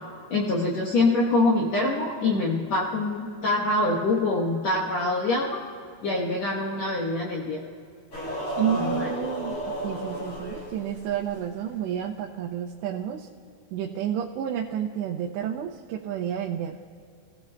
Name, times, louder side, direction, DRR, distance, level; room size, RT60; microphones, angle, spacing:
voice 1, 0.3-5.6 6.0-7.6 8.7-9.1, left 2 dB, 85° left, -3 dB, 1.5 m, -25 dB
sound 1, 8.1-11.4, equal, 35° left, 4.0 m, -32 dB
voice 2, 8.6-9.6 9.8-13.3 13.7-16.8, right 9 dB, 85° right, -1 dB, 3.0 m, -30 dB
26.0 x 16.0 x 2.3 m, 2.3 s
omnidirectional pair, 5.0 m